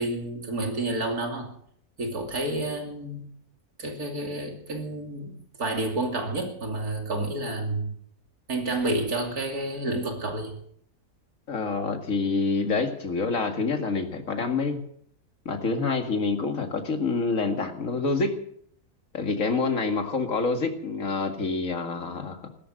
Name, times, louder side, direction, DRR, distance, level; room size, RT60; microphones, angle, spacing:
voice 1, 0.0-1.5 2.0-3.2 3.8-5.3 5.6-7.9 8.5-10.5, right 2 dB, 75° right, 3 dB, 3.3 m, -29 dB
voice 2, 11.5-14.8 15.5-18.4 19.1-22.5, left 4 dB, 55° left, 5 dB, 2.3 m, -27 dB
16.5 x 13.5 x 6.4 m, 0.66 s
omnidirectional pair, 1.6 m